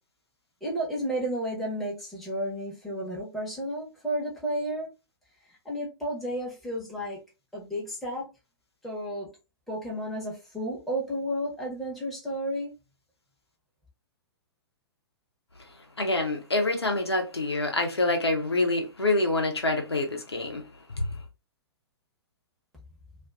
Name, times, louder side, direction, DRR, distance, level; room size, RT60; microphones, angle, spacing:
voice 1, 0.6-4.9 5.6-7.2 7.5-8.3 8.8-9.3 9.7-12.7, equal, ahead, 0.9 m, -32 dB
voice 2, 16.0-20.6 20.9-21.1, left 2 dB, 80° left, 0.6 m, -26 dB
2.4 x 2.4 x 2.3 m
figure-of-eight pair, 110°, 13 cm